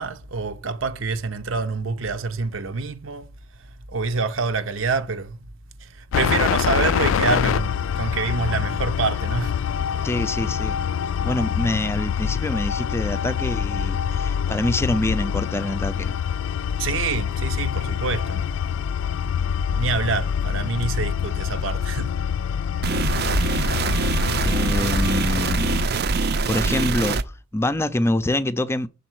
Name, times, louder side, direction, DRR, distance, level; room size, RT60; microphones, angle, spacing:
voice 1, 0.0-3.3 3.9-5.4 5.8-9.5 16.8-18.5 19.7-22.2, right 4 dB, 90° right, 0.9 m, -26 dB
sound 1, 6.1-25.9, left 8 dB, 80° left, 0.3 m, -25 dB
voice 2, 10.0-10.8 11.2-16.1 23.5-25.8 26.5-28.9, left 1 dB, 15° left, 0.5 m, -26 dB
sound 2, 22.8-27.2, right 4 dB, 55° right, 0.6 m, -23 dB
6.9 x 4.2 x 6.1 m
head